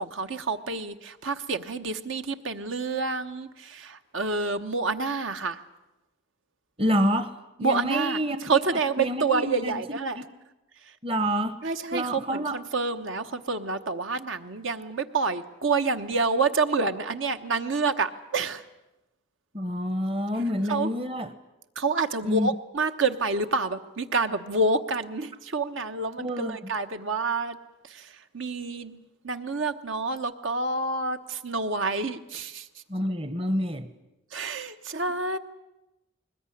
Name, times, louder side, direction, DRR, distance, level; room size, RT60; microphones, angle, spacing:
voice 1, 0.0-5.6 7.6-10.2 11.6-18.6 20.7-20.9 21.8-27.6 27.9-28.0 28.3-29.0 29.2-32.6 34.3-35.4, right 3 dB, 70° right, 8 dB, 1.2 m, -28 dB
voice 2, 6.8-8.6 9.0-10.2 11.0-11.6 11.9-12.6 19.5-21.3 22.2-22.5 26.2-26.7 32.9-33.9, equal, 25° right, 11 dB, 1.0 m, -28 dB
21.5 x 20.5 x 10.0 m, 0.96 s
head